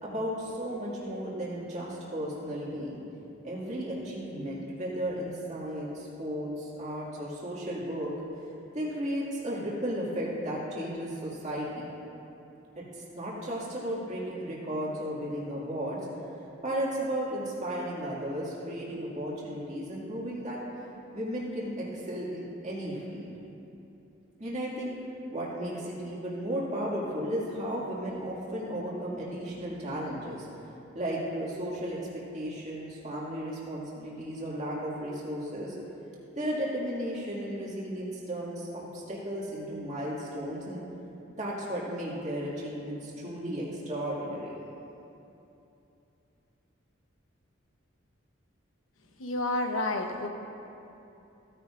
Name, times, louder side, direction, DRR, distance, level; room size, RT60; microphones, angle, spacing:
voice 1, 0.0-3.0 3.4-8.1 8.7-11.9 12.8-16.0 16.6-20.6 21.1-23.3 24.4-25.0 25.3-30.5 30.9-32.0 32.3-35.8 36.3-40.8 41.4-44.5, equal, 35° right, -6 dB, 2.1 m, -34 dB
voice 2, 49.2-50.3, left 2 dB, 90° left, 4 dB, 1.0 m, -30 dB
15.5 x 9.9 x 2.5 m, 2.9 s
head